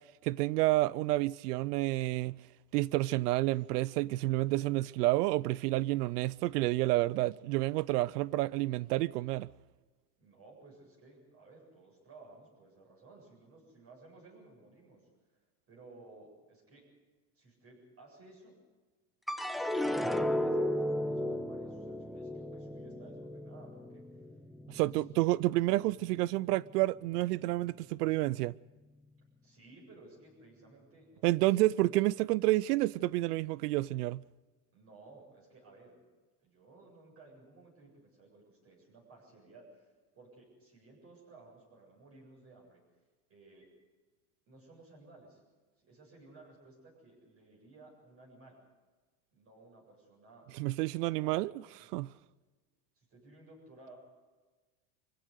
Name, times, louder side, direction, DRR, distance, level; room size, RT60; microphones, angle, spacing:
voice 1, 0.2-2.4 2.7-9.5 24.7-28.5 31.2-34.2 50.6-51.5 51.9-52.1, right 18 dB, 80° right, 0.6 m, -29 dB
voice 2, 10.2-15.4 15.7-16.8 17.3-18.6 19.9-24.3 24.9-25.0 29.4-31.6 34.7-36.0 36.4-42.8 43.3-43.7 44.5-45.4 45.8-48.6 49.3-50.5 50.8-52.2 52.9-54.0, right 2 dB, 30° right, 7.7 m, -57 dB
sound 1, 19.3-25.7 26.2-26.8, left 1 dB, ahead, 0.8 m, -35 dB
25.0 x 16.0 x 8.2 m
supercardioid pair, 135°, 46 cm